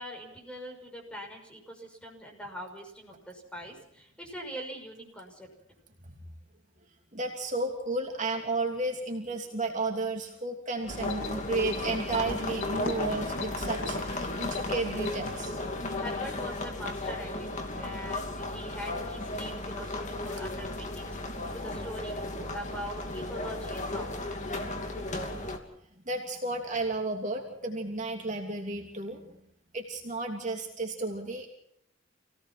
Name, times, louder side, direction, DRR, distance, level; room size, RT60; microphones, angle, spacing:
voice 1, 0.0-5.5 15.9-17.5 17.8-24.2, equal, 5° left, 1 dB, 6.2 m, -42 dB
voice 2, 7.1-15.5 26.0-29.3 29.7-31.5, right 2 dB, 40° right, 1 dB, 3.0 m, -33 dB
sound 1, 10.8-15.7, left 2 dB, 75° left, 6.9 m, -41 dB
sound 2, 10.9-25.6, left 2 dB, 40° left, 2.8 m, -35 dB
27.5 x 17.5 x 6.0 m, 0.72 s
head